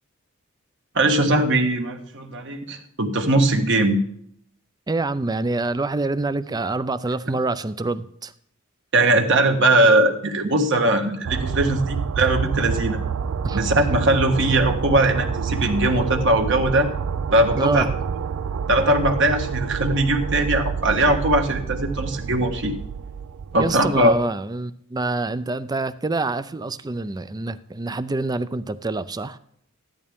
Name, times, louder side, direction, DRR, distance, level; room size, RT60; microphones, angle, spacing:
voice 1, 0.9-4.0 8.9-13.0 13.5-16.9 17.3-17.9 18.7-22.7 23.5-24.1, right 1 dB, 55° right, 1.4 m, -20 dB
voice 2, 4.9-8.3 13.4-13.6 17.5-17.9 23.6-29.4, right 2 dB, 20° right, 0.4 m, -26 dB
sound 1, 11.2-24.2, right 6 dB, 75° right, 0.4 m, -28 dB
14.0 x 11.0 x 3.6 m
head